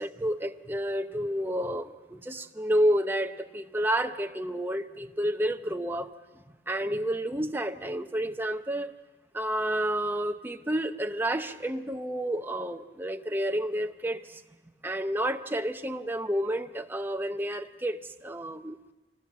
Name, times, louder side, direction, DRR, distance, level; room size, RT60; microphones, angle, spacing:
voice 1, 0.0-6.1 6.7-8.9 9.3-14.4 14.8-18.8, right 1 dB, 10° right, 7 dB, 0.7 m, -30 dB
25.0 x 19.5 x 7.5 m, 1.2 s
head